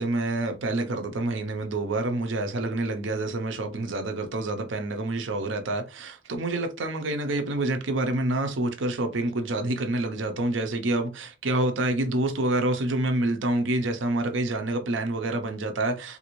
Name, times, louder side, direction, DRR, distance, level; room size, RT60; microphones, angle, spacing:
voice 1, 0.0-16.2, right 2 dB, 75° right, 0.6 m, -27 dB
3.3 x 2.5 x 3.0 m
head